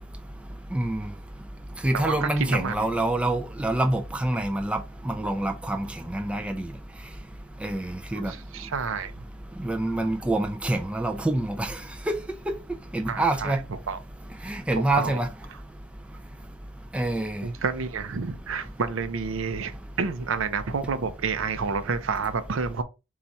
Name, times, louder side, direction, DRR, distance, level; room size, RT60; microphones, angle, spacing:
voice 1, 0.7-1.0 1.8-6.7 7.6-8.3 9.6-11.8 12.1-12.2 12.9-13.6 14.5-15.3 16.9-17.4, right 1 dB, 5° right, 0.3 m, -26 dB
voice 2, 1.9-2.9 8.1-9.2 9.9-10.1 13.1-14.0 14.9-15.2 17.4-19.7 20.0-22.8, right 5 dB, 65° right, 0.5 m, -29 dB
4.3 x 2.4 x 4.0 m
head